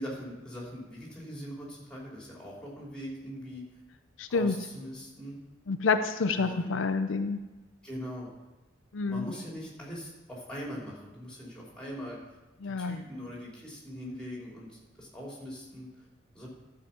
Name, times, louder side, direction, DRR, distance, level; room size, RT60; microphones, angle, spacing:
voice 1, 0.0-3.6 4.3-5.4 6.3-6.8 7.8-8.3 9.0-12.4 12.6-16.1 16.3-16.5, equal, 5° left, -4 dB, 3.1 m, -41 dB
voice 2, 4.2-4.5 5.7-7.4 8.9-9.3 12.6-13.0, left 4 dB, 75° left, 8 dB, 0.6 m, -28 dB
12.5 x 5.0 x 7.0 m, 1.1 s
head